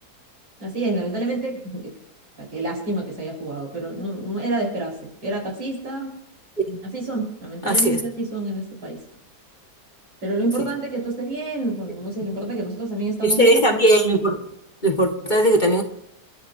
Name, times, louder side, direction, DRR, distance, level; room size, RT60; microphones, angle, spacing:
voice 1, 0.6-1.9 2.4-6.1 6.9-9.0 10.2-13.6, right 2 dB, 90° right, -2 dB, 6.0 m, -28 dB
voice 2, 7.6-8.0 13.2-14.4 14.8-15.8, right 1 dB, 30° left, 3 dB, 1.5 m, -18 dB
28.0 x 12.5 x 2.7 m, 0.75 s
omnidirectional pair, 1.7 m